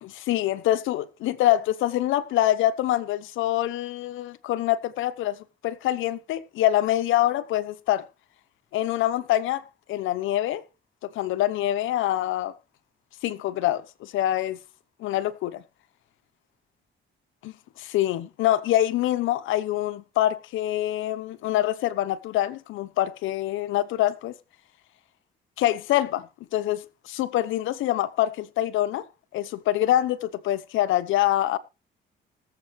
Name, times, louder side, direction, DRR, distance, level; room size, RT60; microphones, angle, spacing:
voice 1, 0.0-5.4 5.6-8.1 8.7-10.6 11.1-12.5 13.2-14.6 15.0-15.6 17.4-24.3 25.6-29.0 29.3-31.6, left 13 dB, 90° left, 0.9 m, -25 dB
20.0 x 7.6 x 3.2 m
cardioid pair, 90°, 20 cm